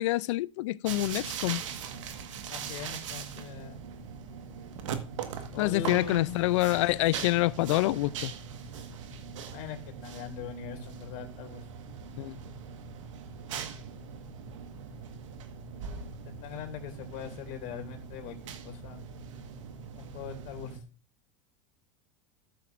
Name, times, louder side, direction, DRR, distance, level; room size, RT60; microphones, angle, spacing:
voice 1, 0.0-1.6 5.6-8.3 12.2-12.4, left 18 dB, 75° left, 0.5 m, -27 dB
sound 1, 0.8-20.8, right 6 dB, 85° right, 1.6 m, -41 dB
voice 2, 2.5-3.8 5.5-6.4 9.5-11.6 16.4-19.0 19.9-20.8, left 7 dB, 55° left, 2.6 m, -41 dB
14.0 x 7.7 x 2.6 m
supercardioid pair, 115°, 16 cm